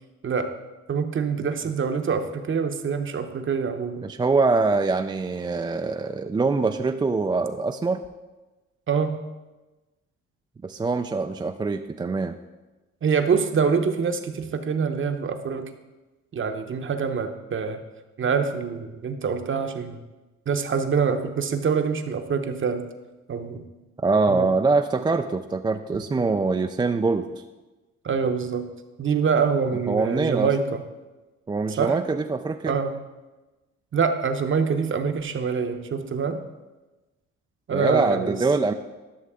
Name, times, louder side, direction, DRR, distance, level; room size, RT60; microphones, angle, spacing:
voice 1, 0.9-4.0 8.9-9.2 13.0-15.7 16.3-17.8 18.2-20.0 20.5-22.8 23.3-23.6 24.3-24.5 28.0-28.6 29.0-30.8 31.8-32.0 32.7-33.0 33.9-36.4 37.7-38.3, right 6 dB, 40° right, 7 dB, 0.9 m, -25 dB
voice 2, 4.0-8.0 10.6-12.3 24.0-27.3 29.9-30.5 31.5-32.7 37.7-38.7, right 3 dB, 15° right, 6 dB, 0.3 m, -24 dB
11.5 x 6.5 x 3.6 m, 1.1 s
cardioid pair, 90°, 30 cm